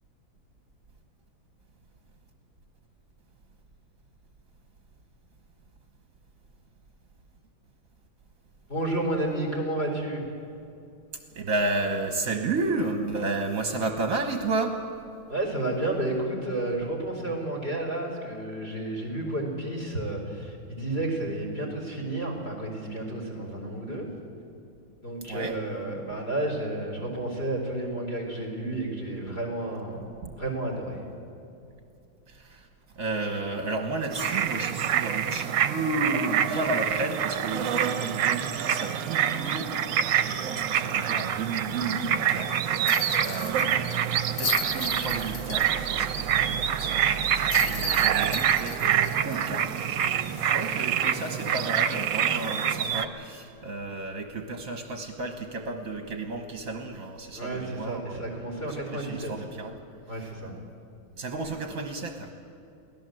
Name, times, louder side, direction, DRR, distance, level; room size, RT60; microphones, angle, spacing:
voice 1, 8.7-10.2 15.3-24.1 25.0-30.0 30.4-31.0 57.3-59.3 60.1-60.5 61.4-61.5, right 1 dB, 30° left, 2 dB, 4.6 m, -31 dB
voice 2, 11.3-14.8 25.3-25.6 30.2-30.3 32.3-32.7 32.9-59.7 60.2-60.3 61.2-62.3, right 3 dB, 45° right, 5 dB, 1.6 m, -32 dB
sound 1, 34.1-53.1, right 9 dB, 65° right, 1.5 m, -26 dB
sound 2, 36.1-50.0, right 10 dB, 85° right, 1.6 m, -38 dB
sound 3, 42.9-46.1 46.4-46.5 47.5-50.2 50.6-50.7 52.8-53.0, left 7 dB, 60° left, 0.7 m, -36 dB
23.5 x 17.5 x 7.8 m, 2.7 s
omnidirectional pair, 2.2 m